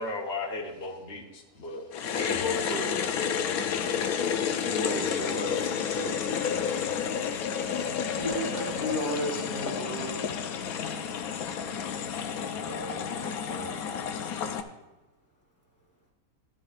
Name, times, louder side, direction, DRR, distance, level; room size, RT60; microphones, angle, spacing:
voice 1, 0.0-1.9 2.1-2.9 4.8-5.1 5.6-5.7, left 2 dB, 45° left, -2 dB, 1.4 m, -36 dB
sound 1, 1.9-14.6, left 7 dB, 70° left, 1.2 m, -31 dB
voice 2, 4.5-6.8 12.6-13.8, equal, 10° right, -5 dB, 3.2 m, -38 dB
voice 3, 8.2-10.2, left 1 dB, 75° right, -2 dB, 3.4 m, -32 dB
13.5 x 13.0 x 2.5 m, 1.0 s
omnidirectional pair, 1.7 m